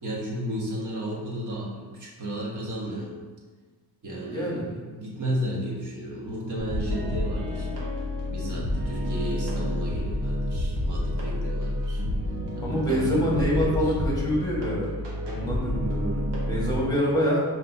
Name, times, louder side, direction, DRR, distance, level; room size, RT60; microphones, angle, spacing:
voice 1, 0.0-3.1 4.0-7.7 8.3-12.0 12.6-13.9, equal, 45° right, -4 dB, 1.3 m, -33 dB
voice 2, 4.2-4.6 12.6-14.9 15.2-17.4, equal, 10° left, -4 dB, 1.4 m, -26 dB
sound 1, 6.6-16.8, left 1 dB, 75° right, 1.1 m, -29 dB
5.2 x 2.8 x 2.6 m, 1.4 s
cardioid pair, 80°, 41 cm